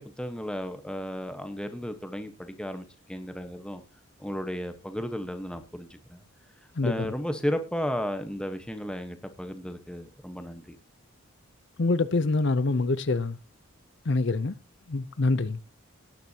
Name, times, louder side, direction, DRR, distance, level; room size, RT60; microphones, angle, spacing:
voice 1, 0.0-3.8 4.2-6.2 6.8-10.8, equal, 5° left, 1.1 m, -34 dB
voice 2, 6.8-7.1 11.8-13.4 14.1-14.5 14.9-15.6, left 3 dB, 55° left, 0.6 m, -25 dB
18.5 x 10.5 x 2.8 m
head